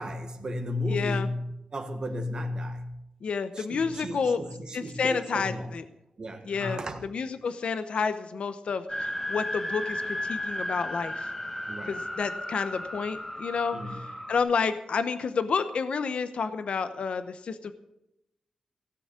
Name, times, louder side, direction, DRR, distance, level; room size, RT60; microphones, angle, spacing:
voice 1, 0.0-3.0 3.5-5.7 6.2-7.0 11.7-12.0 13.7-14.0, left 1 dB, 40° right, 6 dB, 1.5 m, -34 dB
voice 2, 0.9-1.3 3.2-4.4 4.7-5.8 6.5-6.8 7.1-11.3 11.9-13.8 14.3-17.7, left 5 dB, 65° left, 10 dB, 0.8 m, -30 dB
sound 1, 8.9-14.4, left 1 dB, 10° left, 1.5 m, -34 dB
16.5 x 7.0 x 8.3 m, 0.86 s
wide cardioid pair, 125°, 2 cm